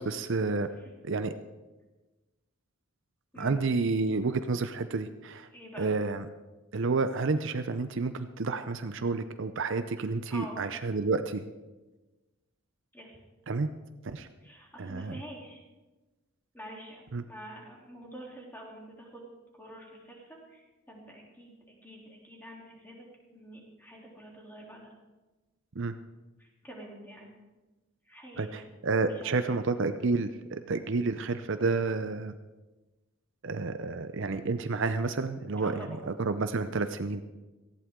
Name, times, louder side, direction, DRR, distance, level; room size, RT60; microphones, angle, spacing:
voice 1, 0.0-0.7 1.0-1.3 3.4-5.5 5.8-6.2 6.7-11.4 13.5-13.7 14.0-14.3 14.8-15.2 17.1-17.2 25.8-25.9 28.4-32.3 33.4-37.2, right 3 dB, 60° right, 10 dB, 0.6 m, -30 dB
voice 2, 5.5-5.9 10.3-10.6 12.9-13.2 14.4-15.6 16.5-19.2 19.5-21.5 21.8-24.9 26.4-27.3 28.0-28.7 29.1-29.5 35.6-36.1, right 1 dB, 10° left, -2 dB, 3.2 m, -47 dB
18.5 x 14.5 x 3.7 m, 1.2 s
head